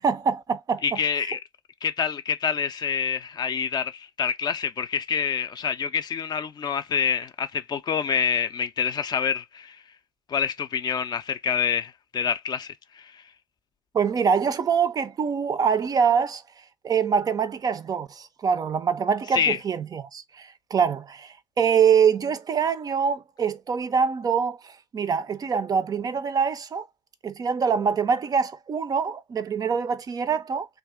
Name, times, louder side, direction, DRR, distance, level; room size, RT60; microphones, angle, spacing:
voice 1, 0.0-0.8 13.9-16.4 16.8-26.9 27.2-30.7, right 6 dB, 30° right, 0.4 m, -24 dB
voice 2, 0.8-1.4 1.8-9.8 10.3-13.2 19.3-19.6, left 7 dB, 35° left, 0.4 m, -27 dB
2.6 x 2.3 x 3.4 m
figure-of-eight pair, 60°, 13 cm